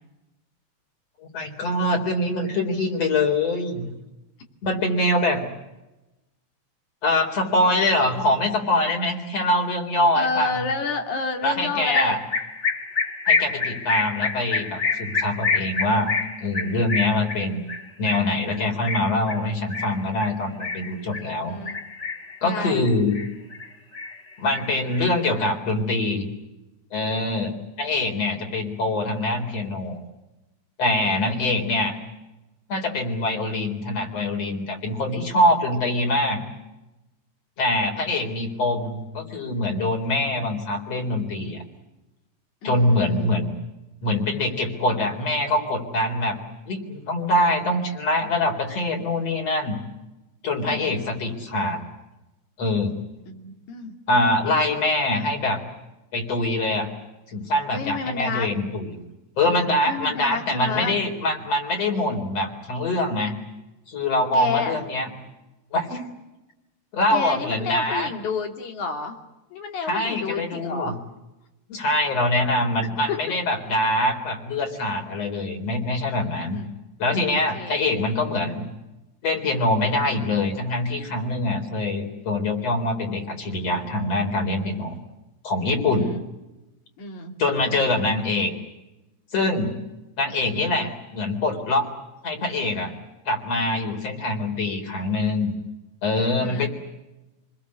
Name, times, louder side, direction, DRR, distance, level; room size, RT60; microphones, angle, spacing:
voice 1, 1.3-3.9 4.6-5.4 7.0-10.6 11.4-12.2 13.3-16.1 16.4-17.6 18.0-21.6 22.4-23.2 24.4-26.3 26.9-30.0 30.8-32.0 32.7-36.4 37.6-41.6 42.6-43.5 44.0-46.4 46.6-49.7 50.4-51.8 52.6-52.9 54.1-55.6 56.1-56.9 57.3-59.0 59.4-63.4 63.9-65.1 65.7-66.0 66.9-68.1 69.8-70.9 71.7-76.6 77.0-78.6 79.2-85.0 85.4-86.1 87.4-88.5 89.3-89.7 90.2-91.9 92.2-92.9 93.3-95.5 96.0-96.7, left 2 dB, 60° left, 3 dB, 5.0 m, -24 dB
voice 2, 10.2-12.2 21.2-21.8 22.4-22.9 28.4-28.6 31.0-31.5 42.6-43.4 50.7-51.1 53.3-54.0 57.7-58.5 59.8-60.9 64.3-64.8 67.1-69.2 69.5-71.0 73.1-73.2 76.5-76.6 77.5-77.8 85.9-86.2 87.0-87.3 96.2-96.7, left 4 dB, 85° left, 4 dB, 4.2 m, -30 dB
sound 1, 11.9-21.3 21.7-22.4 22.7-23.7 23.9-25.3, left 4 dB, 30° left, 1.7 m, -27 dB
28.5 x 21.0 x 8.5 m, 1.0 s
omnidirectional pair, 3.3 m